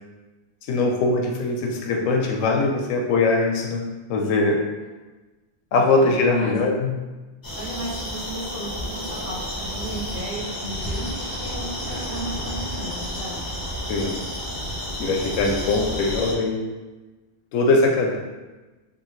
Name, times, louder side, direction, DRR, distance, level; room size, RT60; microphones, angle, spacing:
voice 1, 0.7-3.8 4.1-4.6 5.7-7.0 13.9-14.2 15.0-16.6 17.5-18.2, left 3 dB, 90° left, 1 dB, 1.0 m, -21 dB
voice 2, 5.7-6.5 7.5-13.6, right 1 dB, 80° right, -7 dB, 1.5 m, -35 dB
sound 1, 7.4-16.3, equal, 30° left, 0.4 m, -31 dB
3.3 x 2.4 x 3.0 m, 1.2 s
omnidirectional pair, 1.3 m